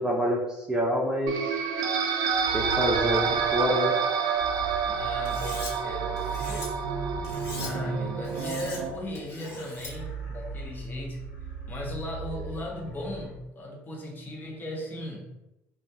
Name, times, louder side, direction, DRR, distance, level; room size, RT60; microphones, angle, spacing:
voice 1, 0.0-1.5 2.5-3.9, equal, 10° right, -3 dB, 0.5 m, -27 dB
sound 1, 1.3-8.9, right 6 dB, 70° right, 0.3 m, -28 dB
sound 2, 2.3-13.3, right 3 dB, 90° left, 0.9 m, -39 dB
voice 2, 4.9-6.7 7.6-11.3 11.7-15.2, left 1 dB, 30° left, -1 dB, 0.7 m, -37 dB
Cutlery silverware, 5.3-5.7 6.2-6.7 7.2-7.7 8.2-8.8 9.2-9.9, left 3 dB, 55° left, 1.1 m, -40 dB
2.3 x 2.2 x 2.7 m, 0.93 s
supercardioid pair, 95°, 6 cm